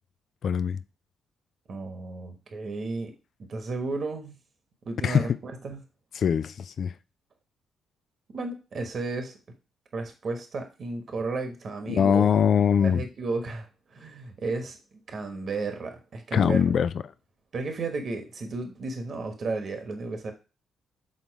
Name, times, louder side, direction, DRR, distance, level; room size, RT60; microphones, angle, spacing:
voice 1, 0.4-0.8 5.0-5.3 6.2-6.9 11.9-13.0 16.3-16.9, left 7 dB, 60° left, 0.4 m, -22 dB
voice 2, 1.7-3.1 3.4-4.3 4.8-5.8 8.3-9.4 9.9-12.2 12.8-14.8 15.1-16.6 17.5-20.3, right 3 dB, 50° right, 1.2 m, -33 dB
6.7 x 4.0 x 4.6 m
hypercardioid pair, 45°, 0 cm